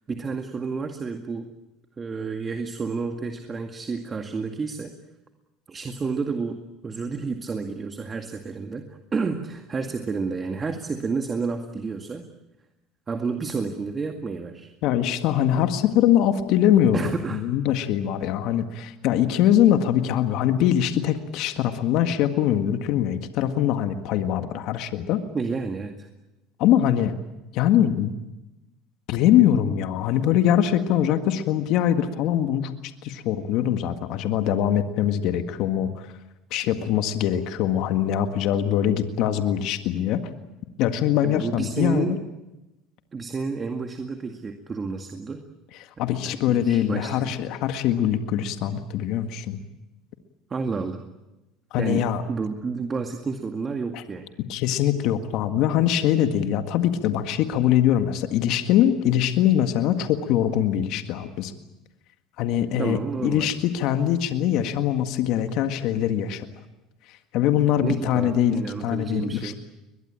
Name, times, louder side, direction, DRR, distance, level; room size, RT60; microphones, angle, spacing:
voice 1, 0.1-1.5 2.0-4.9 5.7-12.3 13.1-14.7 16.9-17.4 25.3-26.1 41.2-42.2 43.1-45.4 46.2-47.4 50.5-51.0 51.8-54.3 62.8-63.5 67.8-69.5, right 4 dB, 30° right, 5 dB, 2.1 m, -30 dB
voice 2, 14.8-17.0 17.3-25.2 26.6-27.1 27.5-28.1 29.1-32.7 33.0-36.1 36.5-40.2 40.8-42.2 46.0-49.6 51.7-52.2 53.9-54.0 54.5-61.5 62.4-66.4 67.3-69.5, left 10 dB, 65° left, 8 dB, 1.8 m, -22 dB
22.0 x 21.5 x 8.8 m, 1.0 s
supercardioid pair, 95°, 0 cm